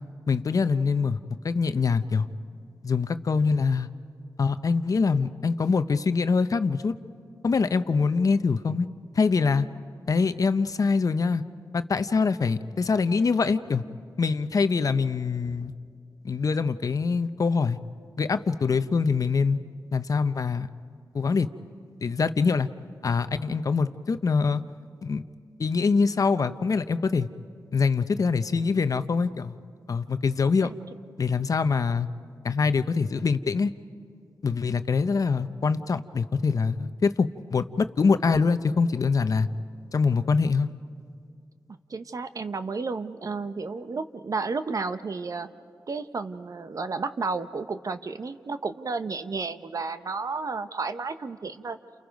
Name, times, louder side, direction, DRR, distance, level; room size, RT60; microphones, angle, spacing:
voice 1, 0.3-1.2 1.4-2.3 2.8-3.9 4.4-6.9 7.4-8.9 9.1-9.7 10.1-11.4 11.7-13.8 14.2-15.7 16.2-17.8 18.2-19.6 19.9-20.7 21.1-21.5 22.0-22.7 23.0-24.6 25.0-25.2 25.6-27.3 27.7-29.5 29.9-30.7 31.2-32.1 32.4-33.7 34.4-39.5 39.9-40.7, left 4 dB, 55° left, 11 dB, 0.8 m, -24 dB
voice 2, 41.9-45.5 45.9-51.8, right 4 dB, 50° right, 11 dB, 0.9 m, -32 dB
30.0 x 28.5 x 5.3 m, 2.3 s
cardioid pair, 65°, 7 cm